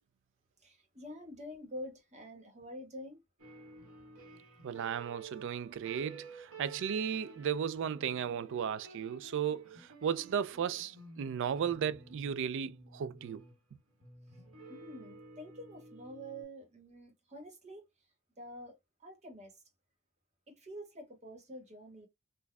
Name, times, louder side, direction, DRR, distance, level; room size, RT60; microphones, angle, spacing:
voice 1, 0.6-3.2 14.3-14.4 14.7-18.1 18.4-19.6 20.5-22.1, equal, 30° right, 1.4 m, -47 dB
sound 1, 3.4-16.4, right 3 dB, 80° right, 1.7 m, -53 dB
voice 2, 4.6-13.4, right 8 dB, 55° right, 0.3 m, -35 dB
3.9 x 2.6 x 2.3 m
head